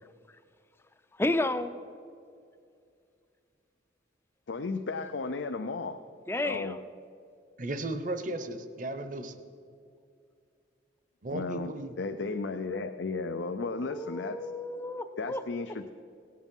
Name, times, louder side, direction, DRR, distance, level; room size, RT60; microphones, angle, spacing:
voice 1, 1.2-1.8 6.3-6.8 13.9-15.4, left 2 dB, 15° left, 11 dB, 0.5 m, -31 dB
voice 2, 4.5-6.0 6.4-6.8 11.3-11.7 12.0-14.5 15.2-15.9, left 3 dB, 80° left, 7 dB, 0.6 m, -34 dB
voice 3, 7.6-9.4 11.2-11.9, right 2 dB, 45° right, 10 dB, 0.8 m, -35 dB
17.0 x 9.5 x 5.4 m, 2.4 s
head